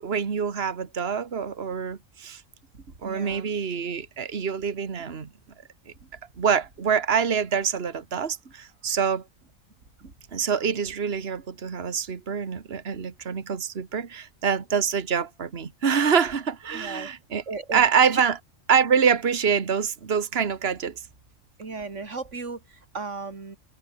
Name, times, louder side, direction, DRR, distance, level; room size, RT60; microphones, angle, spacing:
voice 1, 0.0-2.4 3.0-5.3 5.9-6.0 6.4-9.2 10.3-17.4 17.7-18.4 18.7-21.0, right 7 dB, 55° right, 1.7 m, -25 dB
voice 2, 2.7-3.5 6.0-6.1 8.4-8.5 10.0-10.1 16.7-17.1 17.5-17.9 18.1-18.2 21.6-23.6, right 4 dB, 70° right, 2.9 m, -36 dB
omnidirectional pair, 1.3 m